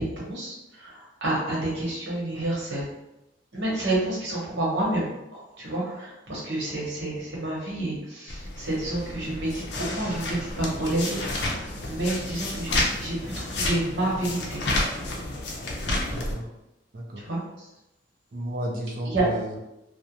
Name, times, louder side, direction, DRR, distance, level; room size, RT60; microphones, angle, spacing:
voice 1, 0.0-2.9 3.5-14.6 17.2-17.7 19.1-19.2, right 1 dB, 70° right, -5 dB, 1.0 m, -29 dB
sound 1, 8.3-16.4, left 2 dB, 65° left, 0.5 m, -30 dB
voice 2, 16.1-16.6 16.9-17.2 18.3-19.6, right 1 dB, 50° right, 0 dB, 0.5 m, -33 dB
2.4 x 2.1 x 2.8 m, 0.93 s
head